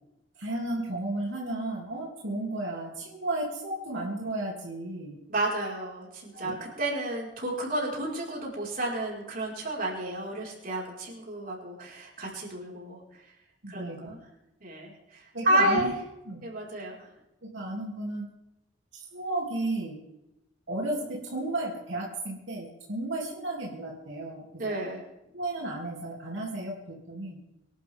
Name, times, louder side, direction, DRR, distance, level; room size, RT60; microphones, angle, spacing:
voice 1, 0.4-5.2 6.4-6.7 13.6-14.0 15.3-15.9 16.3-16.4 17.4-18.3 18.9-20.0 20.7-24.7 25.3-27.4, right 2 dB, 85° right, -3 dB, 3.3 m, -33 dB
voice 2, 5.3-13.0 13.7-14.2 14.6-15.9 16.4-17.0 24.6-25.0, right 1 dB, 50° right, -3 dB, 5.5 m, -31 dB
24.5 x 12.5 x 3.8 m, 0.90 s
head